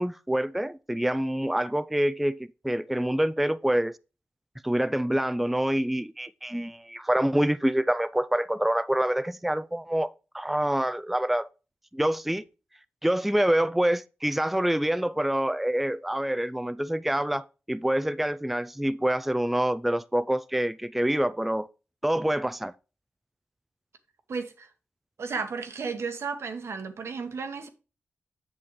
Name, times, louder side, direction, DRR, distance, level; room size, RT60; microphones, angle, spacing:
voice 1, 0.0-2.4 2.6-4.0 4.6-11.5 11.9-12.4 13.0-21.7 22.0-22.7, right 1 dB, 5° right, 0.3 m, -26 dB
voice 2, 24.3-24.7 25.2-27.7, right 5 dB, 75° right, 1.1 m, -33 dB
7.6 x 6.9 x 3.1 m
cardioid pair, 60°, 5 cm